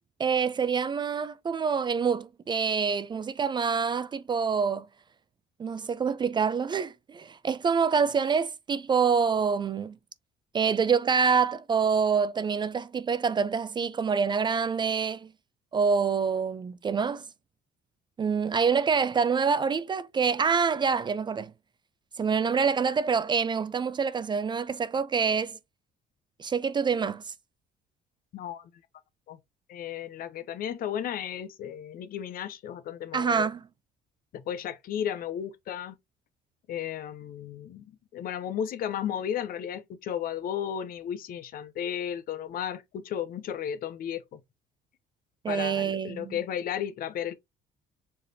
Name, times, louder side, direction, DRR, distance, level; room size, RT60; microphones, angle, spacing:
voice 1, 0.2-4.9 5.6-10.0 10.5-15.3 15.7-17.3 18.2-21.5 22.2-25.6 26.4-27.3 33.1-33.6 45.4-46.4, right 6 dB, 25° right, 0.3 m, -26 dB
voice 2, 28.3-28.7 29.3-29.4 29.7-33.5 34.3-35.9 36.7-37.9 38.1-44.4 45.5-47.3, left 9 dB, 60° left, 0.7 m, -34 dB
4.7 x 3.3 x 2.8 m
cardioid pair, 110°, 17 cm